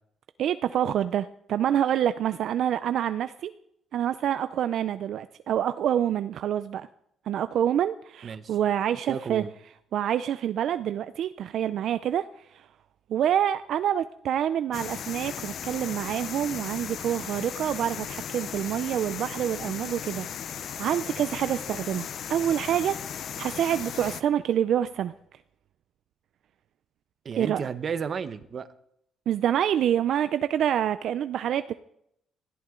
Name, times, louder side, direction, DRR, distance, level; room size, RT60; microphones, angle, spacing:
voice 1, 0.4-3.5 3.9-6.9 7.3-9.4 9.9-12.7 13.1-23.0 23.4-25.1 27.4-27.6 29.3-31.7, right 10 dB, 65° right, 12 dB, 0.5 m, -27 dB
voice 2, 8.2-8.6 9.1-9.5 27.2-28.7, right 6 dB, 40° right, 12 dB, 0.9 m, -33 dB
sound 1, 14.7-24.2, left 8 dB, 55° left, 0.6 m, -36 dB
20.0 x 14.0 x 3.8 m, 0.74 s
cardioid pair, 130°, 0 cm